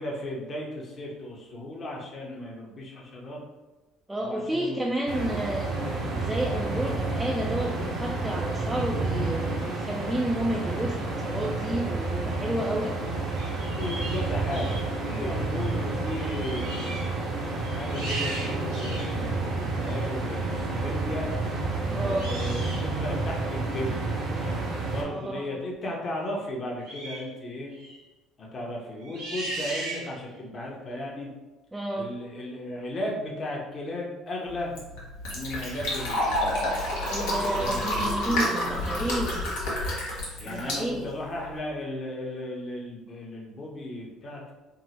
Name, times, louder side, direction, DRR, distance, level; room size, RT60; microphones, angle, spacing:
voice 1, 0.0-3.4 4.2-5.2 13.4-17.0 17.7-21.3 22.0-24.0 24.9-27.7 28.4-31.3 31.9-34.8 35.3-38.2 38.6-39.4 40.4-44.5, left 1 dB, 45° left, -2 dB, 0.9 m, -36 dB
voice 2, 4.1-5.7 6.2-13.0 21.9-22.4 25.0-25.5 31.7-32.2 37.1-39.5 40.5-41.1, right 1 dB, 10° right, -2 dB, 0.4 m, -31 dB
sound 1, 5.1-25.0, right 3 dB, 55° right, 0.7 m, -30 dB
sound 2, 13.3-14.9 15.6-15.8 16.1-17.1 17.6-19.2 19.9-20.1 22.1-22.9 26.8-27.3 27.7-28.0 29.0-30.3, right 2 dB, 85° right, 1.0 m, -38 dB
Fill (with liquid), 34.5-41.6, left 1 dB, 80° left, 1.0 m, -29 dB
3.6 x 2.1 x 2.9 m, 1.1 s
supercardioid pair, 80°, 0 cm